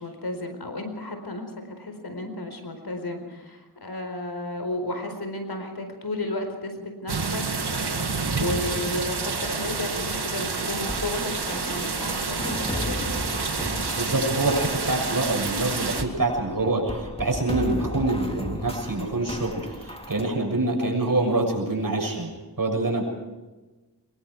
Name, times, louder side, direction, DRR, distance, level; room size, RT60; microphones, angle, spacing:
voice 1, 0.0-13.0, left 2 dB, 80° left, 6 dB, 4.5 m, -33 dB
sound 1, 7.1-16.0, right 4 dB, 90° right, 2.0 m, -29 dB
sound 2, 10.8-20.2, equal, 15° left, 3.2 m, -35 dB
voice 2, 14.0-22.3 22.6-23.0, right 2 dB, 60° right, 1 dB, 6.9 m, -25 dB
25.0 x 22.0 x 4.8 m, 1.2 s
wide cardioid pair, 55°, 38 cm